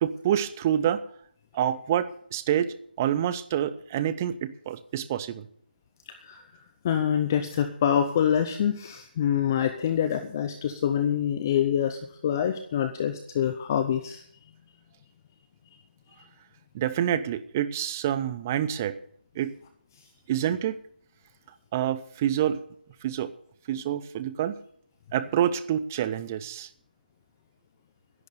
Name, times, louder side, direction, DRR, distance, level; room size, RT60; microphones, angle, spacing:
voice 1, 0.0-1.0 1.5-5.5 16.7-19.0 19.4-19.6 20.3-20.8 21.7-22.6 23.0-23.3 23.7-24.6 25.1-26.7, right 10 dB, 15° right, 14 dB, 0.5 m, -27 dB
voice 2, 6.8-14.2, left 9 dB, 20° left, 10 dB, 0.7 m, -26 dB
11.0 x 9.0 x 9.3 m, 0.65 s
figure-of-eight pair, 165°, 5 cm